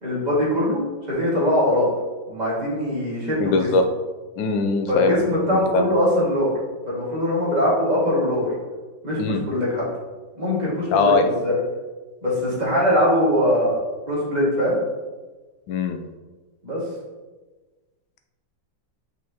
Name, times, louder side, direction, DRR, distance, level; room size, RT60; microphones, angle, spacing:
voice 1, 0.0-1.9 2.3-3.7 4.9-6.5 6.9-8.5 9.0-9.9 10.3-11.5 12.2-13.8 14.1-14.8 16.6-16.8, left 1 dB, 25° right, -7 dB, 2.1 m, -22 dB
voice 2, 3.4-3.8 4.4-5.2 5.5-5.9 9.2-9.4 10.9-11.2 15.7-16.0, left 3 dB, 85° left, 7 dB, 1.4 m, -21 dB
6.3 x 5.5 x 2.9 m, 1.3 s
omnidirectional pair, 2.0 m